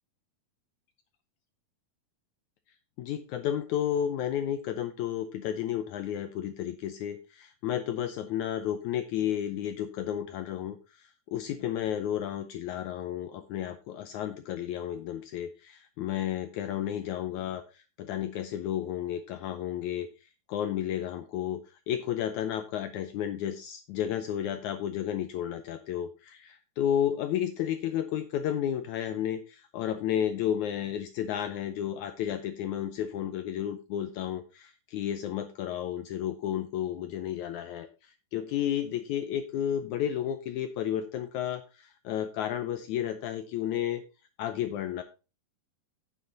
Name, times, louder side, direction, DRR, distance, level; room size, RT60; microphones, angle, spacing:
voice 1, 3.0-20.1 20.5-44.0 44.4-45.0, left 10 dB, 80° left, 9 dB, 1.7 m, -32 dB
9.4 x 6.7 x 4.2 m, 0.31 s
omnidirectional pair, 4.1 m